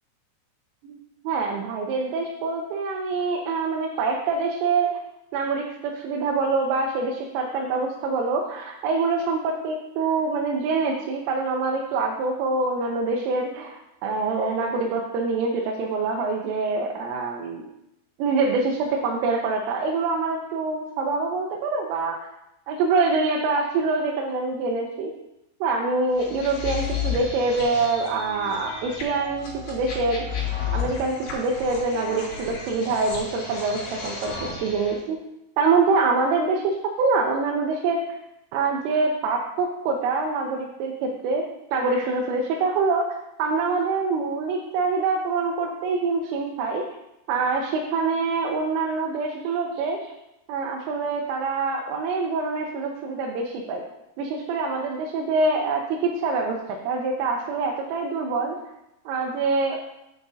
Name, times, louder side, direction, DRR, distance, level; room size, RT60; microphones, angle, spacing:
voice 1, 1.2-4.9 5.3-17.7 18.2-22.2 22.7-25.1 25.6-30.2 30.7-35.2 35.6-38.2 38.5-41.4 41.7-43.1 43.4-46.8 47.3-50.1 50.5-53.8 54.2-58.6 59.1-59.8, right 4 dB, 90° right, 0 dB, 3.4 m, -25 dB
sound 1, 26.2-35.0, left 6 dB, 70° left, 4.9 m, -33 dB
9.4 x 9.2 x 2.8 m, 0.88 s
omnidirectional pair, 5.6 m